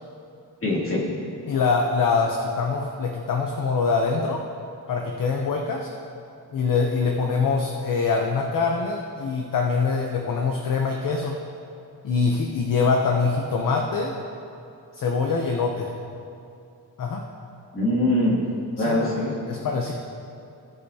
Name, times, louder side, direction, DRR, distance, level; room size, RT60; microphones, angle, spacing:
voice 1, 0.6-1.0 17.7-18.4 18.8-19.3, left 1 dB, 30° left, -7 dB, 2.6 m, -22 dB
voice 2, 1.5-4.5 4.9-5.9 6.5-11.4 12.0-14.1 14.9-15.9 17.0-17.2 18.8-19.0 19.5-19.9, left 4 dB, 50° left, 2 dB, 0.7 m, -24 dB
18.0 x 8.1 x 2.8 m, 2.6 s
wide cardioid pair, 175°, 41 cm